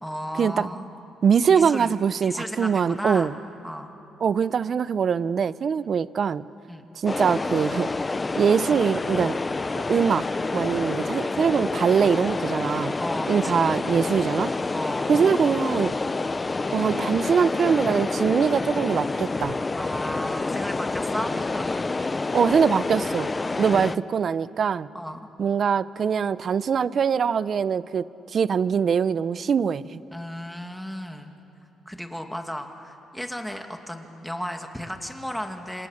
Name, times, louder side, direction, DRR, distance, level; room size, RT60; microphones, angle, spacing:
voice 1, 0.0-0.9 1.5-1.9 2.2-3.3 3.6-4.0 6.7-6.9 13.0-13.7 14.7-15.3 19.8-21.9 23.4-24.0 24.9-25.2 30.1-31.3 31.9-35.9, equal, ahead, 4 dB, 2.4 m, -34 dB
voice 2, 1.2-3.3 4.2-6.4 7.0-7.9 8.4-9.4 9.9-13.0 13.3-14.5 15.1-15.9 16.7-19.6 22.3-23.3 23.6-24.9 25.4-28.1 28.3-30.0, right 7 dB, 50° right, 17 dB, 0.7 m, -23 dB
sound 1, 7.1-24.0, left 3 dB, 25° left, 0.7 m, -28 dB
28.0 x 27.0 x 6.6 m, 2.9 s
cardioid pair, 90°, 0 cm